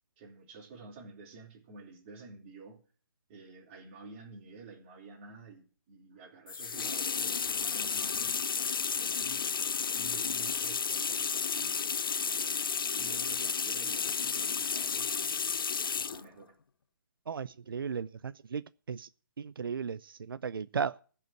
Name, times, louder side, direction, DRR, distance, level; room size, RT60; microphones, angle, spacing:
voice 1, 0.2-2.8 3.3-9.4 9.9-12.6 12.9-15.3 15.6-16.6, right 4 dB, 25° right, 3.7 m, -51 dB
sound 1, 6.5-16.3, left 6 dB, 85° left, 0.6 m, -32 dB
voice 2, 17.3-19.1 19.4-21.0, right 6 dB, 90° right, 0.5 m, -36 dB
15.5 x 5.6 x 7.7 m
hypercardioid pair, 165°, 11 cm